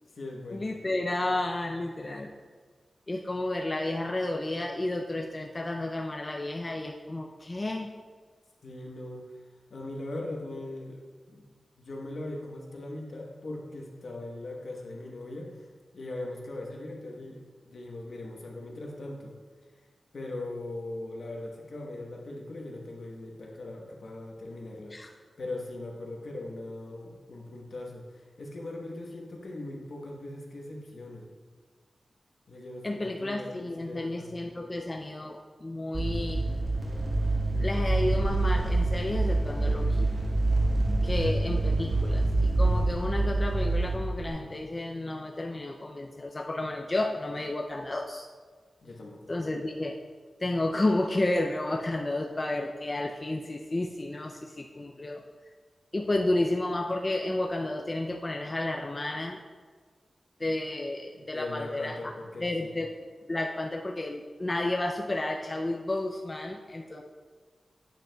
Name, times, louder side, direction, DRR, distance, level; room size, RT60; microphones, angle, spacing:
voice 1, 0.0-0.7 8.6-9.2 9.7-11.0 11.3-11.4 11.8-15.7 15.9-19.3 20.1-31.3 32.5-34.4 48.8-49.3 61.1-62.8, left 2 dB, 65° left, 0 dB, 1.0 m, -40 dB
voice 2, 0.5-2.3 3.1-7.9 24.9-25.1 32.8-36.4 37.6-40.1 41.0-48.3 49.3-50.0 50.4-55.2 55.9-59.4 60.4-62.0 62.4-62.9 63.3-67.0, left 2 dB, 30° left, 2 dB, 0.4 m, -31 dB
sound 1, 35.9-44.3, right 2 dB, 55° right, 0.8 m, -26 dB
8.5 x 6.3 x 2.3 m, 1.5 s
wide cardioid pair, 110°, 0 cm